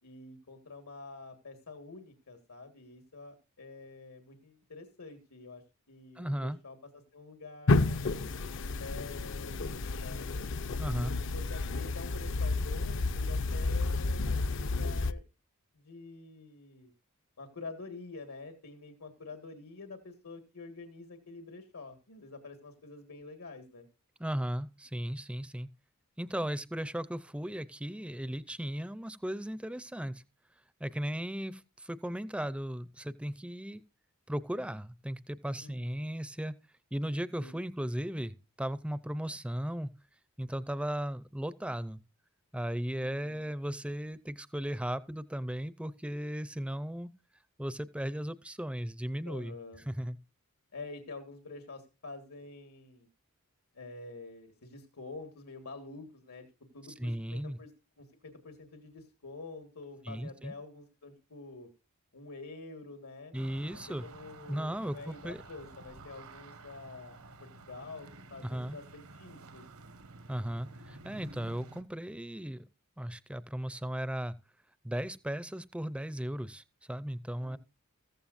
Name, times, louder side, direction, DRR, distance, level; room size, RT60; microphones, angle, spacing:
voice 1, 0.0-8.1 8.8-10.2 10.8-15.2 15.7-16.9 17.4-23.8 35.6-36.1 37.4-37.5 49.2-49.8 50.7-53.1 53.7-56.4 56.7-57.7 58.0-61.7 62.1-63.3 63.7-69.9 77.4-77.6, left 3 dB, 85° left, 1.8 m, -47 dB
voice 2, 6.2-6.6 10.8-11.1 24.2-25.7 26.2-30.2 30.8-33.8 34.3-36.5 36.9-39.9 40.4-42.0 42.5-47.1 47.6-49.6 49.9-50.2 57.0-57.6 60.1-60.5 63.3-64.1 64.5-65.4 68.4-68.8 70.3-72.6 73.0-74.3 74.8-77.6, equal, 5° right, 0.5 m, -36 dB
sound 1, 7.7-15.1, left 3 dB, 55° left, 0.6 m, -31 dB
sound 2, 63.3-71.8, right 2 dB, 80° right, 1.3 m, -51 dB
15.0 x 14.5 x 2.6 m
head